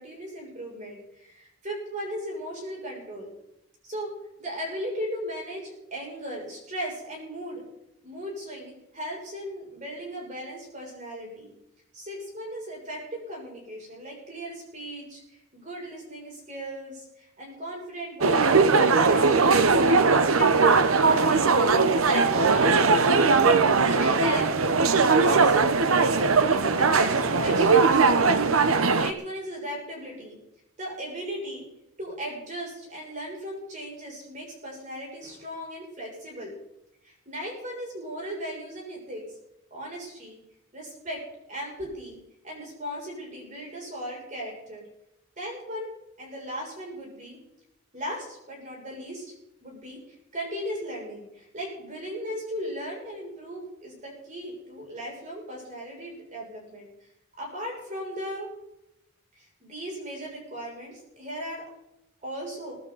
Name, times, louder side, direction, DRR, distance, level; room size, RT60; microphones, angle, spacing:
voice 1, 0.0-3.3 3.8-4.1 4.4-7.6 8.0-11.5 11.9-19.7 20.2-20.7 21.0-21.5 22.0-23.0 23.8-24.5 25.1-28.3 28.9-30.4 30.8-31.6 32.0-36.5 37.0-39.2 39.7-40.4 40.7-41.2 41.5-42.2 42.4-44.9 45.4-45.9 46.2-47.4 47.9-49.3 49.6-50.0 50.3-56.9 57.4-58.5 59.3-61.6 62.2-62.8, equal, 35° right, -2 dB, 6.9 m, -37 dB
sound 1, 18.2-29.1, right 4 dB, 75° right, 1.0 m, -20 dB
22.5 x 11.5 x 4.1 m, 0.86 s
head